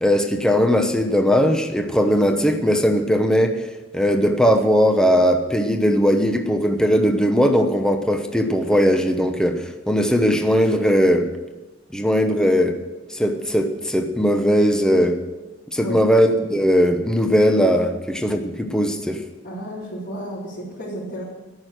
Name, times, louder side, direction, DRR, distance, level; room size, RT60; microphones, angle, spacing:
voice 1, 0.0-3.6 3.9-11.3 11.9-12.7 13.1-15.2 15.7-19.2, equal, 5° left, 5 dB, 0.9 m, -19 dB
voice 2, 19.4-21.2, equal, 55° left, -11 dB, 4.3 m, -32 dB
13.5 x 6.4 x 9.2 m, 1.1 s
head